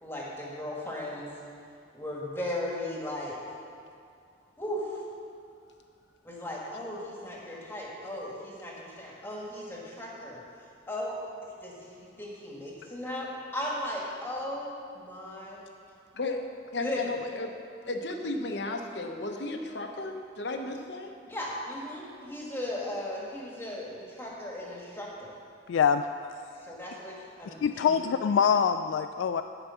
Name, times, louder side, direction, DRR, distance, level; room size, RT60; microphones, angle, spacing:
voice 1, 0.0-1.3 1.9-3.4 4.6-5.0 6.2-10.4 10.9-11.2 11.6-15.6 16.8-17.2 21.3-25.3 26.6-28.1, left 1 dB, 15° left, -4 dB, 1.9 m, -37 dB
voice 2, 16.7-17.5 17.9-21.1, left 2 dB, 65° left, 4 dB, 1.0 m, -34 dB
voice 3, 25.7-26.0 27.6-29.4, left 7 dB, 80° left, 9 dB, 0.3 m, -24 dB
15.0 x 5.1 x 5.8 m, 2.4 s
head